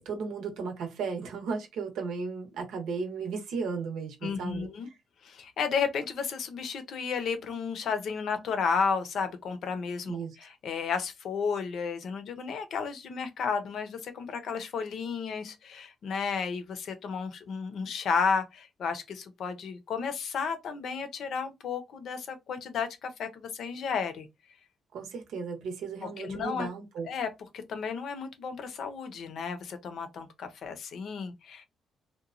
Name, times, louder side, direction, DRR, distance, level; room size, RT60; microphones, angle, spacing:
voice 1, 0.0-4.9 10.1-10.5 24.9-27.1, right 5 dB, 85° right, 0.8 m, -35 dB
voice 2, 4.2-4.9 5.2-24.3 26.0-26.7 27.0-27.3 27.5-31.7, left 5 dB, 65° left, 0.6 m, -33 dB
2.9 x 2.2 x 2.4 m
cardioid pair, 110°, 0 cm